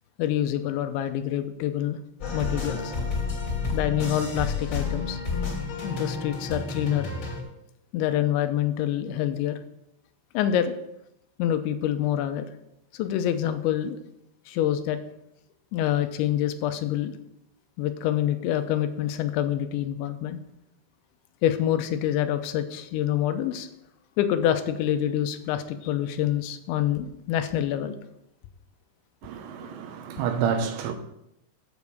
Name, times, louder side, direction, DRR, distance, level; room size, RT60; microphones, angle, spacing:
voice 1, 0.2-2.0 2.3-2.9 3.7-5.2 5.8-7.1 7.9-9.6 10.3-10.7 11.4-12.5 12.9-14.0 14.5-15.0 15.7-17.1 17.8-20.4 21.4-23.7 24.2-28.0 29.6-29.7, left 11 dB, 90° left, 3.0 m, -26 dB
sound 1, 2.2-7.4, left 4 dB, 40° left, 2.2 m, -30 dB
voice 2, 29.2-30.9, right 7 dB, 80° right, 3.0 m, -29 dB
8.3 x 7.2 x 6.6 m
omnidirectional pair, 5.3 m